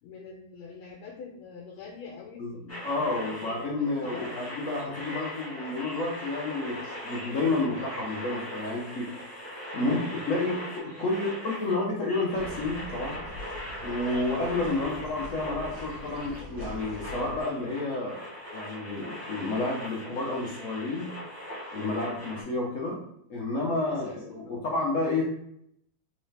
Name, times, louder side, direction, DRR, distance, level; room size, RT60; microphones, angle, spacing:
voice 1, 0.0-4.2 14.7-15.0 23.9-24.6, left 5 dB, 90° left, -1 dB, 1.5 m, -45 dB
sound 1, 2.7-22.4, left 1 dB, 20° left, 0.4 m, -40 dB
voice 2, 2.8-9.1 9.7-13.2 13.8-18.2 18.5-21.1 21.7-23.0 23.3-25.3, left 2 dB, 70° left, -2 dB, 0.7 m, -30 dB
sound 2, 12.3-17.4, left 1 dB, 65° right, 1.2 m, -43 dB
3.5 x 3.1 x 3.2 m, 0.73 s
omnidirectional pair, 2.2 m